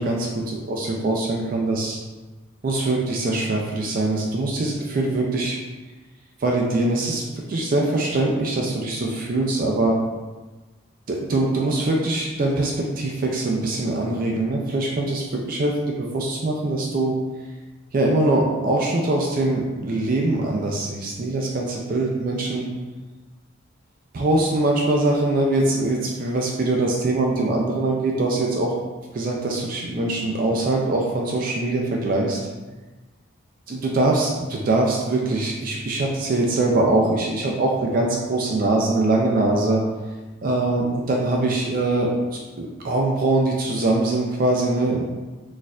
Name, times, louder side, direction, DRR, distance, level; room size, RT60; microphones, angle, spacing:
voice 1, 0.0-2.0 2.6-5.6 6.4-7.2 7.5-10.0 11.1-17.1 17.9-22.7 24.1-28.7 29.1-32.4 33.7-39.8 40.4-42.1 42.6-45.0, right 2 dB, 45° right, -1 dB, 0.3 m, -22 dB
4.1 x 2.5 x 2.3 m, 1.2 s
head